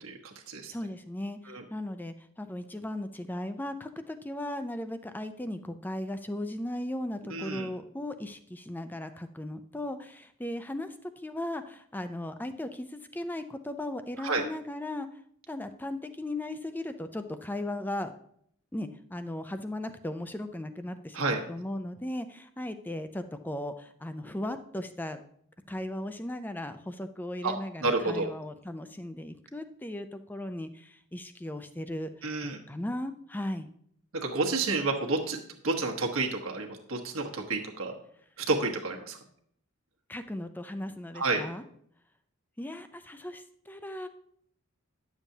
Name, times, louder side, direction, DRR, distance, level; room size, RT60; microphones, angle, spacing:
voice 1, 0.0-0.7 1.5-1.6 7.3-7.7 14.2-14.4 21.1-21.4 27.4-27.5 27.8-28.3 32.2-32.6 34.1-35.4 35.6-37.9 38.4-39.2 41.1-41.4, right 3 dB, 70° right, 2 dB, 1.2 m, -30 dB
voice 2, 0.7-15.1 15.5-18.1 18.7-25.2 25.7-32.1 32.4-33.7 40.1-41.6 42.6-44.1, left 1 dB, 10° left, 9 dB, 0.4 m, -37 dB
10.5 x 7.1 x 2.7 m, 0.67 s
head